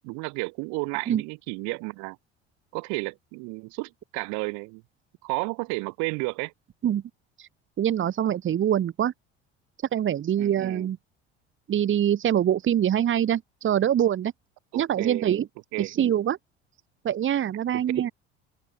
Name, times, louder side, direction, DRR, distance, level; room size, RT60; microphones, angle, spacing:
voice 1, 0.0-2.2 2.7-4.8 5.2-6.5 10.4-10.9 14.7-15.3 15.7-15.9 17.7-18.1, right 29 dB, 60° right, 1.9 m, -32 dB
voice 2, 7.8-9.1 9.9-11.0 11.7-14.3 14.8-15.5 15.8-16.4 17.0-18.1, right 10 dB, 35° right, 1.8 m, -24 dB
figure-of-eight pair, 60°, 33 cm